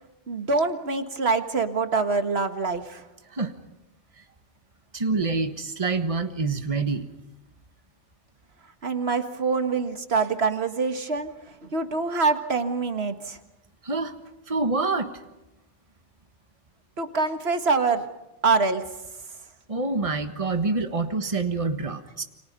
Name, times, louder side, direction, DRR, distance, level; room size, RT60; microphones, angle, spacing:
voice 1, 0.3-3.0 8.8-11.3 11.6-13.4 17.0-18.1 18.4-18.8, right 4 dB, 60° right, 7 dB, 1.9 m, -25 dB
voice 2, 4.9-7.1 13.8-14.1 14.5-15.1 19.7-22.2, right 3 dB, 30° right, 7 dB, 1.6 m, -26 dB
29.0 x 25.5 x 5.4 m, 0.97 s
omnidirectional pair, 1.2 m